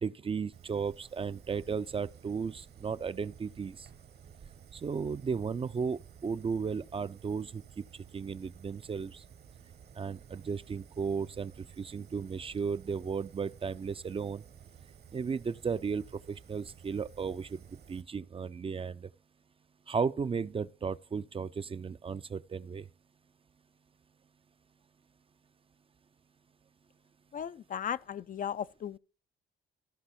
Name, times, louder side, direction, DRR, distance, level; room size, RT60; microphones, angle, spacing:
voice 1, 0.0-3.9 4.7-7.8 8.1-9.2 9.9-14.4 15.1-17.6 17.9-19.1 19.9-22.8, right 5 dB, 30° right, 0.4 m, -35 dB
Fire, 0.5-18.0, right 7 dB, 55° right, 1.1 m, -54 dB
voice 2, 27.3-29.0, left 8 dB, 45° left, 0.4 m, -36 dB
14.0 x 5.5 x 4.2 m
cardioid pair, 90°, 20 cm